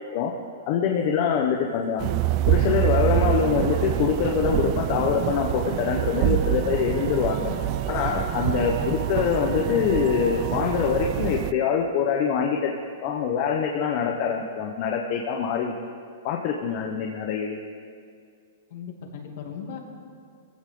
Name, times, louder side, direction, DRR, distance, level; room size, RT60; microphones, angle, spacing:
voice 1, 0.7-2.2 2.5-7.5 7.9-12.7 13.0-15.7 16.2-17.6, left 7 dB, 40° left, 1 dB, 1.0 m, -24 dB
sound 1, 1.0-10.7, right 3 dB, 60° right, 3.8 m, -45 dB
sound 2, 2.0-11.5, right 14 dB, 35° right, 0.4 m, -26 dB
voice 2, 7.3-7.8 8.6-8.9 18.7-19.8, left 7 dB, 55° left, 1 dB, 2.5 m, -38 dB
22.0 x 15.5 x 3.9 m, 2.2 s
hypercardioid pair, 160°, 0 cm